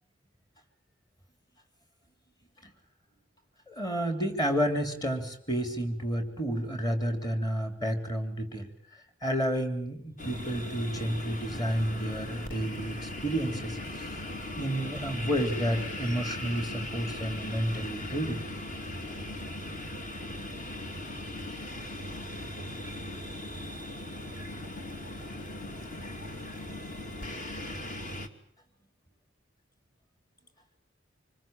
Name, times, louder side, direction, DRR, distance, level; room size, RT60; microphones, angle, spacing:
voice 1, 3.7-8.7 9.2-14.1 14.6-18.4, equal, 20° left, 6 dB, 3.4 m, -30 dB
sound 1, 10.2-28.3, left 1 dB, 45° left, 2.9 m, -38 dB
27.0 x 23.0 x 9.0 m, 0.62 s
head